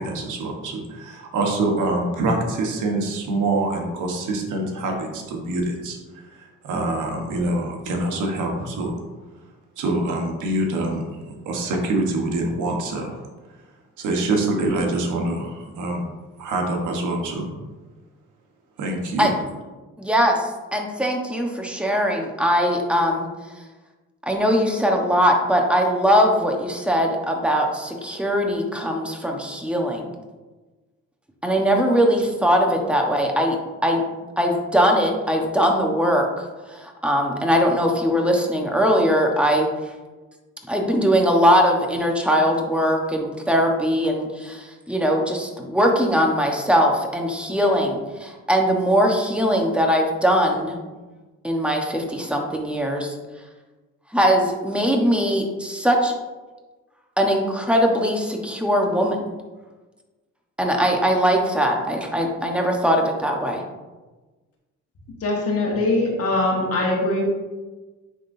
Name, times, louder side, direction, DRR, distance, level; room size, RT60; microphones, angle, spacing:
voice 1, 0.0-6.0 6.4-8.9 9.8-11.0 11.4-13.2 14.0-16.0 16.4-17.5 18.8-19.3, right 2 dB, 80° right, 1 dB, 1.2 m, -25 dB
voice 2, 20.0-23.3 24.3-30.1 31.4-33.5 33.8-34.0 34.4-39.7 40.7-50.8 51.4-53.1 54.1-56.1 57.2-59.2 60.6-63.6, equal, 5° right, 1 dB, 1.1 m, -21 dB
voice 3, 65.2-67.2, left 2 dB, 50° left, -1 dB, 1.6 m, -22 dB
9.7 x 3.7 x 2.7 m, 1.2 s
cardioid pair, 90°, 30 cm